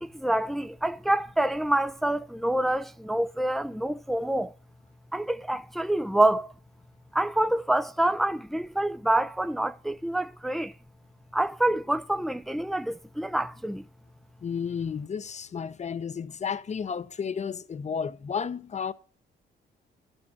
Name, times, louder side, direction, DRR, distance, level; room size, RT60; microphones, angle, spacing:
voice 1, 0.0-4.5 5.1-6.5 7.1-10.7 11.3-13.9, right 1 dB, ahead, 0.5 m, -27 dB
voice 2, 14.4-18.9, left 6 dB, 35° left, 0.7 m, -32 dB
12.0 x 6.4 x 6.0 m
cardioid pair, 90°, 20 cm